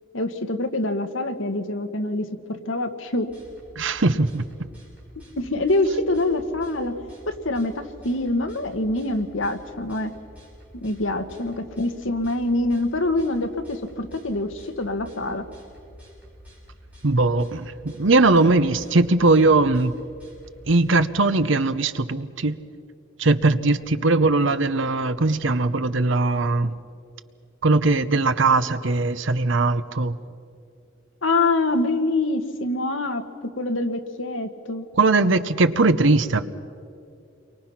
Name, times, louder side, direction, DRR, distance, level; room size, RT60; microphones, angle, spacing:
voice 1, 0.1-3.3 5.4-6.9 7.3-10.1 10.8-15.4 31.2-33.2 33.6-34.8, left 2 dB, 75° left, 1.6 m, -25 dB
sound 1, 3.3-21.1, equal, 5° right, 6.2 m, -48 dB
voice 2, 3.8-4.5 17.0-19.9 20.7-22.6 23.2-26.7 27.6-30.2 34.9-36.4, right 3 dB, 70° right, 0.9 m, -20 dB
29.5 x 23.5 x 5.8 m
head